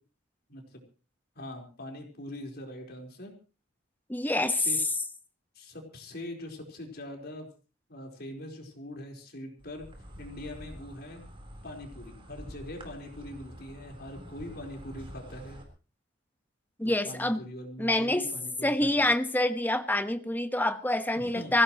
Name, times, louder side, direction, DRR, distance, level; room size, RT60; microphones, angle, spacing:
voice 1, 0.5-0.8 1.3-3.4 4.3-4.8 5.5-7.5 7.9-9.9 10.2-11.2 11.6-15.6 16.8-19.1 21.1-21.5, left 1 dB, 55° left, 2 dB, 4.5 m, -42 dB
voice 2, 4.1-4.5 16.8-17.4 17.8-18.2 18.6-21.6, left 1 dB, 10° left, 9 dB, 1.2 m, -26 dB
Insect, 9.6-15.6, equal, 30° right, 4.2 m, -47 dB
24.0 x 17.0 x 3.1 m, 0.35 s
head